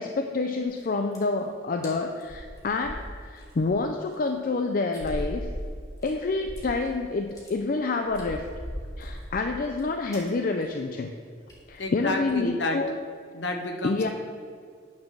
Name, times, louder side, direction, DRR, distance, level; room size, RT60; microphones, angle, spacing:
voice 1, 0.0-5.5 6.0-8.4 9.0-11.1 11.7-12.9 13.8-14.1, left 3 dB, 45° left, 5 dB, 0.4 m, -28 dB
sound 1, 0.6-0.8 1.1-1.4 1.8-1.9 2.2-3.7 4.1-4.2 4.9-6.9 7.2-7.5 8.0-9.8 10.1-10.3 10.6-10.8 11.1-11.2 11.5-11.7 12.1-12.4, equal, 20° left, 1.7 m, -38 dB
voice 2, 11.8-12.8 13.3-14.1, left 2 dB, 65° left, 3 dB, 1.0 m, -30 dB
9.5 x 4.4 x 6.1 m, 2.2 s
head